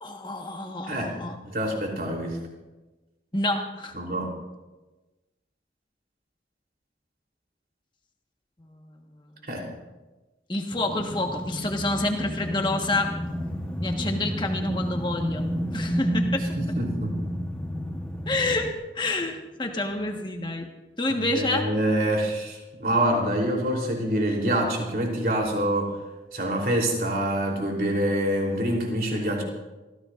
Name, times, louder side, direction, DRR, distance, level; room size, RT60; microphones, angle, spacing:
voice 1, 0.0-1.4 3.3-3.9 10.5-13.1 13.8-16.5 18.3-20.7 21.0-21.7, left 2 dB, 25° left, 3 dB, 1.4 m, -28 dB
voice 2, 1.4-2.4 3.9-4.3 9.5-9.6 16.6-17.1 21.3-26.0 26.3-29.4, right 1 dB, 55° right, 0 dB, 3.5 m, -26 dB
sound 1, 10.7-18.7, equal, 5° left, 1.1 m, -31 dB
26.5 x 15.5 x 2.5 m, 1.1 s
head